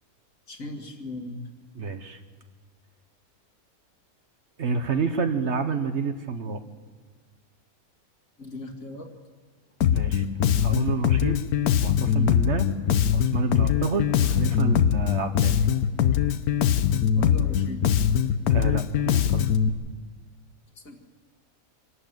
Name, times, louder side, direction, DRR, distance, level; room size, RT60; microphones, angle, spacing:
voice 1, 0.5-1.4 8.4-9.1 17.2-17.8 20.8-21.0, left 2 dB, 65° left, 2 dB, 2.5 m, -38 dB
voice 2, 1.7-2.2 4.6-6.6 9.9-10.2 10.6-11.4 11.8-12.7 13.1-15.6 18.5-19.5, right 4 dB, 55° right, 8 dB, 1.2 m, -29 dB
Bass guitar, 9.8-19.7, left 9 dB, 85° left, 1.3 m, -22 dB
25.5 x 13.0 x 9.2 m, 1.5 s
omnidirectional pair, 1.5 m